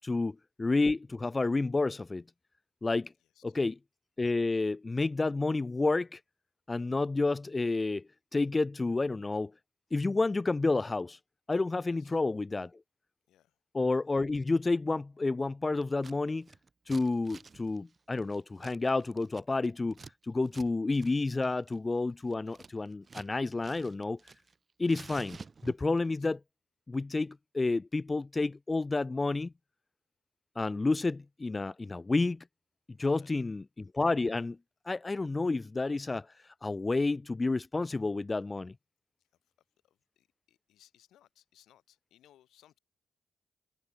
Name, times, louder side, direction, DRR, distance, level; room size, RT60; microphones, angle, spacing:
voice 1, 0.0-2.2 2.8-3.1 3.4-3.7 4.2-6.2 6.7-8.0 8.3-9.5 9.9-11.2 11.5-12.7 13.7-16.5 16.9-24.3 24.8-26.4 26.9-29.5 30.6-32.4 33.0-34.6 34.9-38.7, left 3 dB, 35° left, 0.3 m, -30 dB
voice 2, 3.2-3.6 11.9-12.2 13.3-13.6 26.0-26.3 33.0-33.5 39.2-39.5 39.8-42.8, left 12 dB, 80° left, 6.9 m, -65 dB
Scissors, 15.8-16.2 16.4-20.1 20.5-20.7 20.9-21.1 21.4-23.3 23.6-24.5 24.8-26.0, right 4 dB, 45° right, 3.6 m, -51 dB
supercardioid pair, 45°, 0 cm